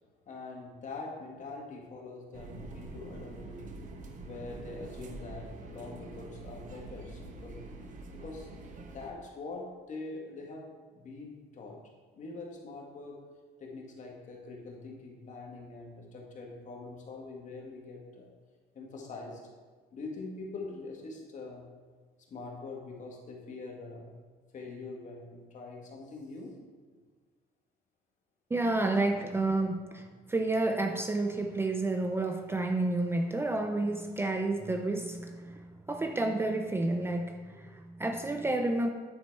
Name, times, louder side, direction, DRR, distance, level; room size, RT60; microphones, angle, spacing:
voice 1, 0.3-3.7 4.2-7.6 8.1-8.5 8.9-10.7 10.9-11.8 12.1-13.2 13.6-18.3 18.7-19.5 19.9-21.7 22.3-24.1 24.5-26.6, left 3 dB, 45° left, 0 dB, 1.7 m, -43 dB
sound 1, 2.3-9.1, right 2 dB, 50° right, 1.0 m, -45 dB
voice 2, 28.5-38.9, right 2 dB, 15° right, 5 dB, 0.5 m, -30 dB
9.6 x 4.0 x 4.6 m, 1.4 s
cardioid pair, 110°, 17 cm